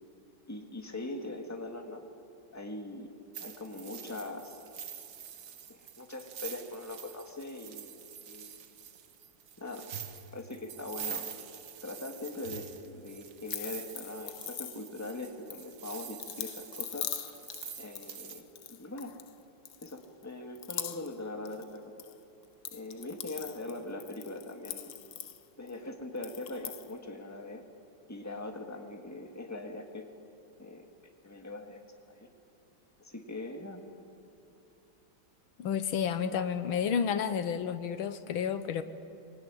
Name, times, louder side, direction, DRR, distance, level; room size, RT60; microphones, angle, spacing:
voice 1, 0.5-2.0 2.5-3.1 3.4-4.6 5.7-8.0 8.3-8.6 9.6-9.9 10.3-11.3 11.8-17.1 17.8-19.1 19.8-21.8 22.7-24.9 25.6-27.6 28.1-30.1 30.6-30.8 31.2-31.8 32.1-32.3 33.0-33.8, left 2 dB, 10° left, 3 dB, 1.9 m, -41 dB
sound 1, 3.3-18.4, right 8 dB, 65° right, 1.8 m, -46 dB
sound 2, 13.5-15.1 15.5-19.3 19.6-20.2 20.5-21.2 21.4-22.1 22.4-25.7 26.2-26.9, left 10 dB, 60° left, 1.3 m, -42 dB
voice 2, 35.6-38.8, left 7 dB, 80° left, 11 dB, 1.7 m, -31 dB
24.0 x 24.0 x 9.8 m, 2.8 s
omnidirectional pair, 2.2 m